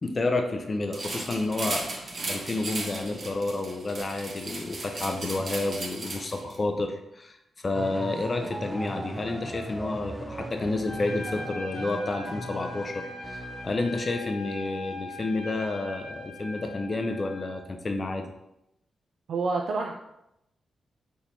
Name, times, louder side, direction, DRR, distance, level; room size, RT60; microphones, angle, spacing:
voice 1, 0.0-18.2, left 2 dB, 40° left, 4 dB, 0.4 m, -30 dB
sound 1, 0.9-6.6, right 2 dB, 50° right, 0.7 m, -36 dB
sound 2, 7.7-14.2, right 1 dB, 10° right, 0.5 m, -38 dB
Trumpet, 10.8-17.6, left 2 dB, 70° left, 1.2 m, -41 dB
voice 2, 19.3-19.9, right 3 dB, 75° right, 1 dB, 0.3 m, -27 dB
4.2 x 2.8 x 2.7 m, 0.84 s
cardioid pair, 65°, 0 cm